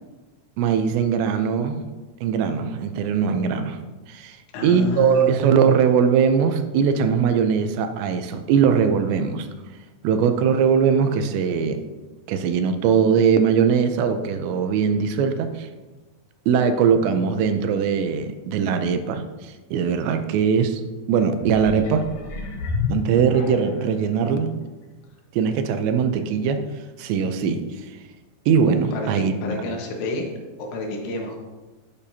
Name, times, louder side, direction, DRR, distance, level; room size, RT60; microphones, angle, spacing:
voice 1, 0.6-1.8 2.2-4.4 4.6-9.5 10.0-11.8 12.3-15.7 16.5-20.8 21.1-22.1 22.9-24.5 25.3-26.6 27.0-27.6 28.5-29.3, right 6 dB, 80° right, 8 dB, 2.9 m, -21 dB
voice 2, 4.5-5.4 28.9-30.3 30.6-31.4, left 3 dB, 80° left, 0 dB, 3.8 m, -29 dB
sound 1, 21.4-24.0 24.6-24.7, left 4 dB, 60° left, 3.2 m, -30 dB
12.0 x 9.1 x 2.8 m, 1.2 s
omnidirectional pair, 5.2 m